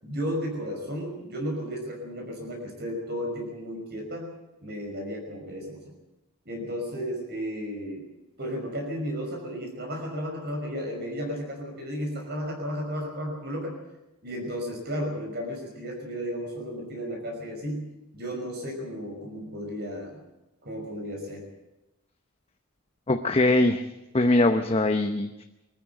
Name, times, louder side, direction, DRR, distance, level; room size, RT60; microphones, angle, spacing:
voice 1, 0.0-4.3 4.6-5.8 6.5-8.0 8.4-13.8 14.2-17.9 18.1-20.2 20.6-21.4, equal, 50° right, 1 dB, 5.6 m, -33 dB
voice 2, 23.1-23.8 24.1-25.4, left 2 dB, 25° left, 7 dB, 0.9 m, -22 dB
21.0 x 14.0 x 9.2 m, 0.95 s
head